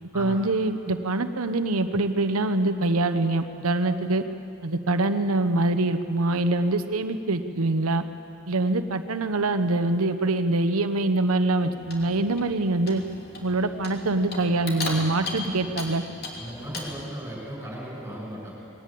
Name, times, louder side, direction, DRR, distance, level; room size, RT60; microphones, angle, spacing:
voice 1, 0.1-4.2 4.6-8.0 8.5-13.0 13.4-16.0, right 2 dB, 90° right, 9 dB, 0.9 m, -24 dB
Clock, 11.6-17.1, left 2 dB, 50° left, 3.1 m, -37 dB
voice 2, 16.4-18.5, equal, 10° right, -4 dB, 6.8 m, -36 dB
20.5 x 18.0 x 8.5 m, 2.6 s
head